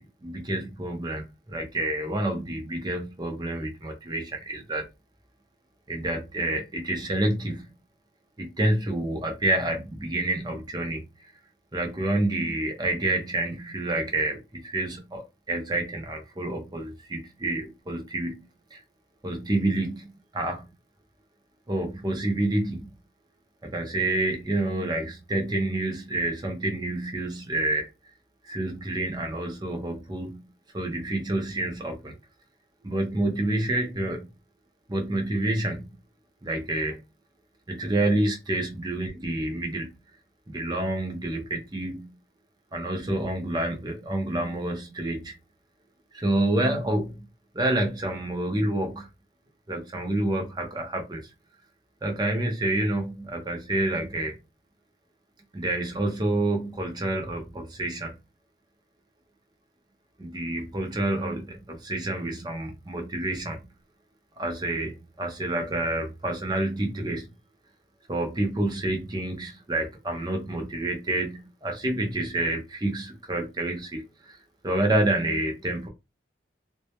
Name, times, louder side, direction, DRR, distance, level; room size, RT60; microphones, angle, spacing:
voice 1, 0.0-4.9 5.9-7.7 8.4-11.1 11.7-18.4 18.7-18.8 19.2-20.6 21.7-22.9 23.6-27.9 28.4-30.5 30.7-32.1 32.8-34.3 34.9-35.9 36.4-37.0 37.7-39.9 40.5-42.2 42.7-45.3 46.1-47.2 47.5-49.1 49.7-51.2 52.0-54.4 55.5-58.2 60.2-63.7 64.4-67.3 68.1-74.4 74.6-75.9, right 1 dB, 20° right, 0.6 m, -28 dB
2.2 x 2.1 x 2.8 m
head